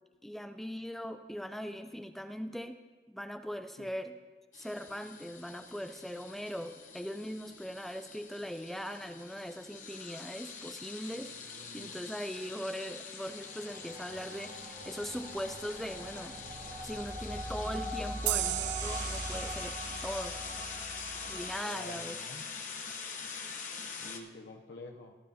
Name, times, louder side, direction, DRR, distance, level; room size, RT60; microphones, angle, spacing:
voice 1, 0.2-2.8 3.1-4.1 4.5-11.3 11.7-16.4 16.8-19.8 20.0-20.4 21.2-22.2, equal, ahead, 8 dB, 0.3 m, -40 dB
sound 1, 4.5-24.2, left 5 dB, 45° left, 0.9 m, -44 dB
voice 2, 11.4-11.9 21.6-22.5 23.5-25.2, left 2 dB, 75° left, 2 dB, 0.7 m, -49 dB
sound 2, 13.3-21.6, right 1 dB, 65° right, 3.5 m, -42 dB
sound 3, 18.3-21.6, right 14 dB, 90° right, 0.4 m, -37 dB
17.5 x 10.5 x 2.8 m, 1.4 s
head